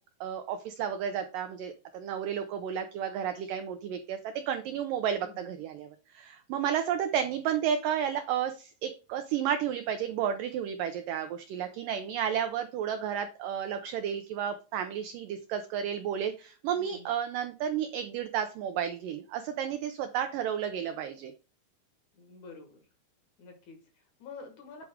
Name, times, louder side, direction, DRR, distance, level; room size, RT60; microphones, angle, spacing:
voice 1, 0.2-21.3, right 9 dB, 85° right, 8 dB, 1.9 m, -32 dB
voice 2, 16.7-17.1 22.1-22.9 23.4-24.9, left 4 dB, 60° left, 4 dB, 2.5 m, -49 dB
8.2 x 4.7 x 3.5 m, 0.35 s
omnidirectional pair, 4.6 m